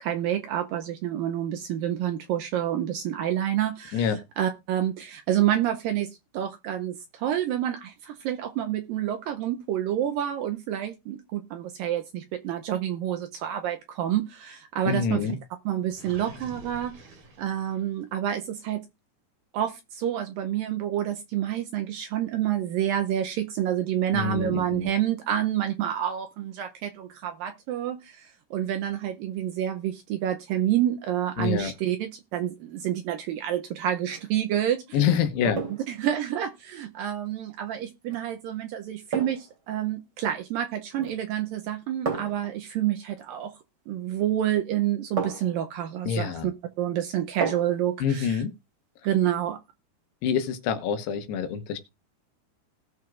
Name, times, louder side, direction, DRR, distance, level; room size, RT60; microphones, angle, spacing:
voice 1, 0.0-4.1 4.4-15.2 15.7-16.9 17.4-18.8 19.5-35.0 35.9-43.5 43.9-46.5 46.8-48.4 49.0-49.6, right 11 dB, 80° right, 2.1 m, -28 dB
voice 2, 3.9-4.2 14.9-15.4 24.1-24.9 31.4-31.7 34.9-35.6 46.0-46.5 48.0-48.5 50.2-51.8, left 7 dB, 85° left, 3.2 m, -26 dB
Gurgling, 15.9-18.1, right 1 dB, 55° right, 4.1 m, -47 dB
sound 1, 34.0-34.3 35.5-36.0 38.1-38.3 39.1-39.6 40.9-41.3 42.0-42.5 44.2-44.3 45.2-45.6 47.4-47.8 48.2-48.3, right 5 dB, 25° right, 3.4 m, -33 dB
18.0 x 6.3 x 2.4 m
omnidirectional pair, 4.7 m